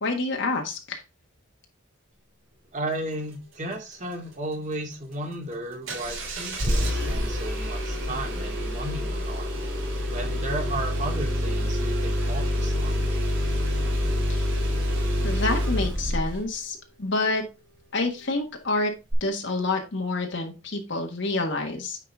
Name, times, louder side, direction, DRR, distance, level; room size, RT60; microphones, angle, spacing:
voice 1, 0.0-1.0 14.3-14.5 15.2-17.4 17.9-18.9 19.2-22.0, left 2 dB, 60° left, 2 dB, 1.5 m, -28 dB
voice 2, 2.7-9.5 10.1-13.0, right 1 dB, 35° right, 2 dB, 2.4 m, -34 dB
Engine starting, 5.9-16.5 19.1-19.2, equal, 65° right, 3.2 m, -27 dB
9.5 x 4.9 x 3.6 m, 0.26 s
head